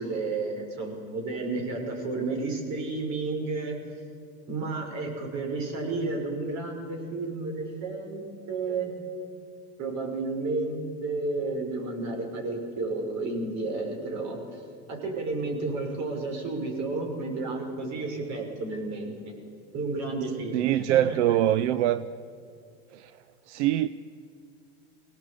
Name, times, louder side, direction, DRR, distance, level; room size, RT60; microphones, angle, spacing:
voice 1, 0.0-3.8 4.5-8.9 9.8-14.6 14.9-19.1 19.7-21.4, right 3 dB, 50° right, 6.1 m, -32 dB
voice 2, 20.5-22.0 22.9-23.1 23.5-23.9, right 12 dB, 85° right, 0.7 m, -23 dB
22.5 x 17.5 x 8.5 m
supercardioid pair, 105°, 34 cm